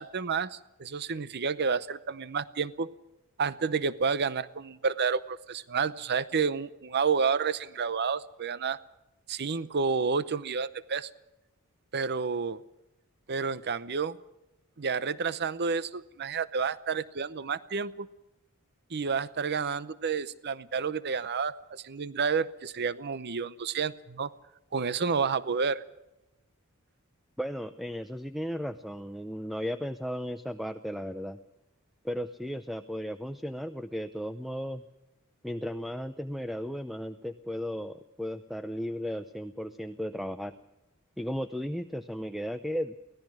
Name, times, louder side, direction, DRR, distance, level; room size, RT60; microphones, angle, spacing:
voice 1, 0.0-2.9 3.4-8.8 9.3-11.1 11.9-12.6 13.3-14.2 14.8-18.1 18.9-24.3 24.7-25.8, right 5 dB, 50° right, 15 dB, 0.7 m, -30 dB
voice 2, 27.4-31.4 32.0-34.8 35.4-40.5 41.2-42.9, equal, ahead, 9 dB, 0.6 m, -35 dB
24.0 x 17.5 x 6.2 m, 0.96 s
head